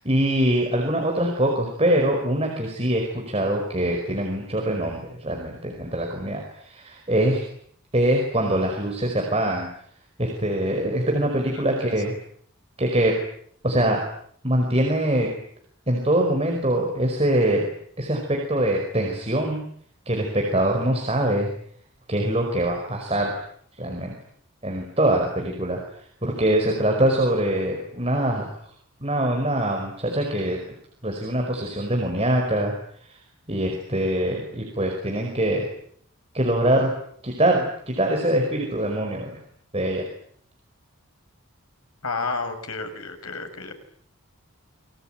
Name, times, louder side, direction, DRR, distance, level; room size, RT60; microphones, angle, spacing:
voice 1, 0.0-7.4 7.9-9.7 10.2-12.1 12.8-13.2 13.6-14.0 14.4-15.3 15.9-17.6 18.0-19.6 20.0-21.5 22.1-23.4 23.8-24.1 24.6-25.8 26.2-28.5 29.0-30.6 31.0-32.7 33.0-33.2 33.5-35.7 36.3-36.9 37.2-39.4 39.7-40.1, right 1 dB, 25° right, 1 dB, 5.3 m, -23 dB
voice 2, 42.0-43.7, left 4 dB, 90° left, 6 dB, 6.1 m, -31 dB
29.0 x 22.5 x 9.1 m, 0.65 s
head